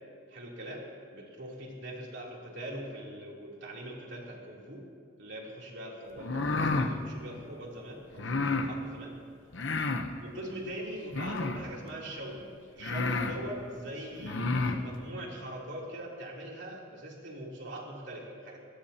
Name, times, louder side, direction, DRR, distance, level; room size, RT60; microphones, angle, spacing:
voice 1, 0.3-4.9 5.2-9.2 10.2-18.6, right 1 dB, 65° right, -2 dB, 3.2 m, -42 dB
sound 1, 6.2-6.9 8.2-8.7 9.5-10.1 11.1-11.7 12.4-12.5 12.8-13.4 14.2-14.8, left 3 dB, 65° left, 0.9 m, -30 dB
23.0 x 19.0 x 2.9 m, 2.2 s
head